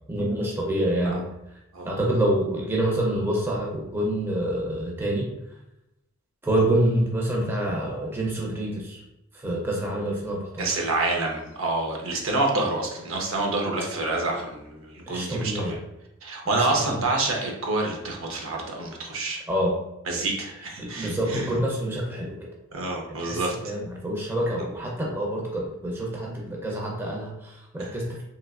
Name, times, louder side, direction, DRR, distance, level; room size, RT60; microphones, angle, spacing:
voice 1, 0.1-1.2 1.8-5.3 6.4-9.0 9.4-10.7 15.1-15.7 16.5-16.7 16.9-17.0 19.5-19.8 20.1-20.2 20.8-22.4 23.2-28.2, right 1 dB, 10° right, -2 dB, 0.5 m, -27 dB
voice 2, 10.6-15.8 16.2-19.4 20.1-21.5 22.7-23.6 27.8-28.0, right 2 dB, 65° right, 0 dB, 0.7 m, -27 dB
3.1 x 3.0 x 2.3 m, 0.87 s
head